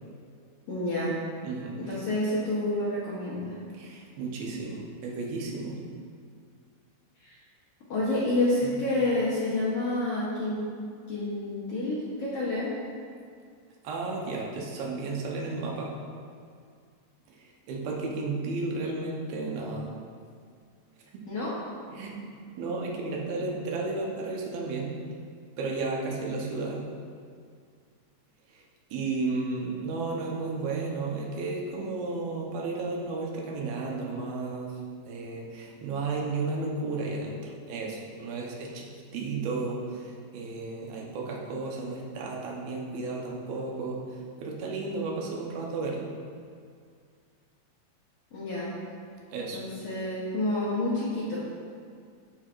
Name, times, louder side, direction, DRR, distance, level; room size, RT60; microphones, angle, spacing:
voice 1, 0.7-1.1 1.8-3.6 7.2-7.4 7.9-10.6 11.1-12.7 21.3-21.5 48.3-48.7 49.5-51.4, left 2 dB, 65° left, -8 dB, 1.6 m, -29 dB
voice 2, 1.4-1.8 3.7-5.8 8.6-8.8 13.8-15.9 17.3-19.9 21.9-22.3 22.6-24.9 25.6-26.8 28.5-28.6 28.9-34.7 35.1-46.1 49.3-49.6, right 3 dB, 90° right, -2 dB, 2.8 m, -33 dB
14.0 x 4.7 x 2.5 m, 2.2 s
omnidirectional pair, 4.1 m